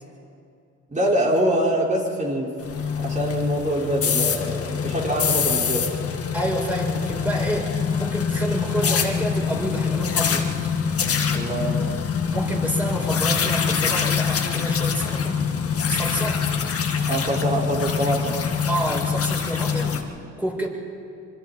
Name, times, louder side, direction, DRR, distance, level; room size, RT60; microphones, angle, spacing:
voice 1, 0.9-5.8 11.3-11.9 17.1-18.4, right 1 dB, 25° right, -3 dB, 5.4 m, -24 dB
sound 1, 2.6-20.0, left 6 dB, 50° left, 2.0 m, -24 dB
voice 2, 6.3-10.7 12.3-15.4 15.9-16.4 18.7-20.1 20.4-20.7, right 1 dB, 5° right, -2 dB, 6.3 m, -28 dB
25.5 x 25.0 x 4.5 m, 2.5 s
cardioid pair, 90°, 30 cm